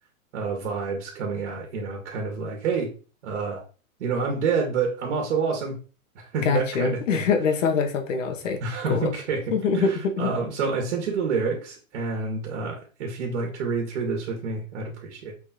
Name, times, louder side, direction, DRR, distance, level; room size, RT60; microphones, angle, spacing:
voice 1, 0.3-2.9 3.2-3.6 4.0-5.8 6.2-7.3 8.6-9.4 9.7-15.3, right 4 dB, 55° right, 2 dB, 2.3 m, -28 dB
voice 2, 6.4-8.6 8.9-9.1 9.5-10.3, left 5 dB, 60° left, 5 dB, 2.0 m, -24 dB
7.4 x 4.7 x 3.9 m, 0.35 s
supercardioid pair, 165°, 42 cm